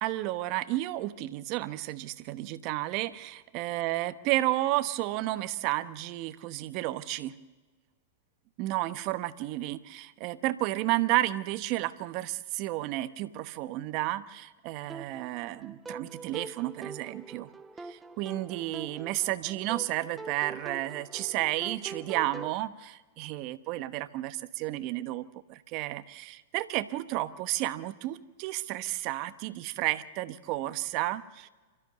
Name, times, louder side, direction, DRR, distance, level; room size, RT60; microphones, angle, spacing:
voice 1, 0.0-7.4 8.6-17.5 17.8-31.5, right 16 dB, 45° right, 12 dB, 1.0 m, -32 dB
sound 1, 14.9-22.6, right 4 dB, 10° right, 0.7 m, -44 dB
28.5 x 13.5 x 6.8 m, 1.3 s
hypercardioid pair, 110°, 0 cm